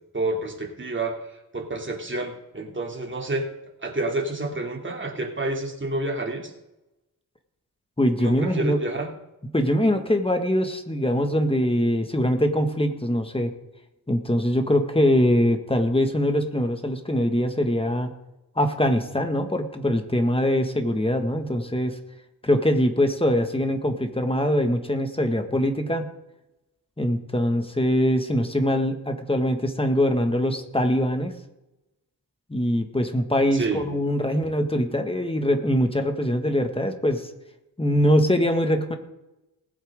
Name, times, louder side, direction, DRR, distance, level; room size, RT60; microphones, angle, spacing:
voice 1, 0.1-1.2 1.5-3.5 3.8-6.5 8.2-9.1 33.5-33.8, right 2 dB, 30° right, 2 dB, 2.9 m, -29 dB
voice 2, 8.0-8.8 9.5-13.5 14.1-18.1 18.6-22.0 22.4-26.1 27.0-31.4 32.5-37.3 37.8-39.0, equal, 15° left, 5 dB, 1.8 m, -23 dB
20.0 x 8.5 x 3.8 m, 0.93 s
cardioid pair, 70°, 37 cm